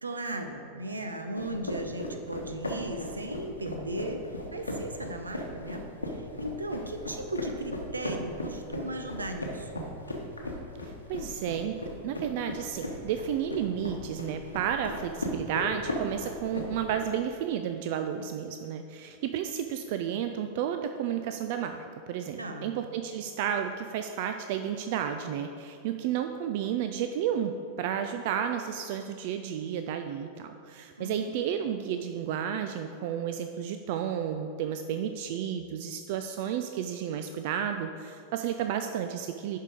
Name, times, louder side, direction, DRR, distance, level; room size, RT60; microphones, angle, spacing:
voice 1, 0.0-9.8 22.4-22.7 31.0-31.3, right 1 dB, 80° right, 6 dB, 0.8 m, -36 dB
sound 1, 1.4-17.0, left 1 dB, 80° left, 1.1 m, -37 dB
voice 2, 10.8-11.8 12.0-39.6, right 9 dB, 50° right, 7 dB, 0.4 m, -32 dB
11.0 x 4.7 x 5.1 m, 2.4 s
figure-of-eight pair, 90°, 0 cm